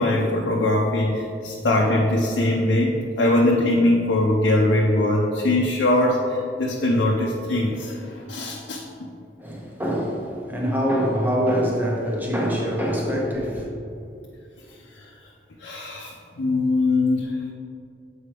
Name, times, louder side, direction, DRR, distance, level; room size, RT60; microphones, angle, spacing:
voice 1, 0.0-8.8 15.6-17.4, left 1 dB, 85° left, -2 dB, 0.6 m, -21 dB
voice 2, 9.4-13.7, equal, 10° right, -2 dB, 0.8 m, -24 dB
7.4 x 4.6 x 3.3 m, 2.5 s
head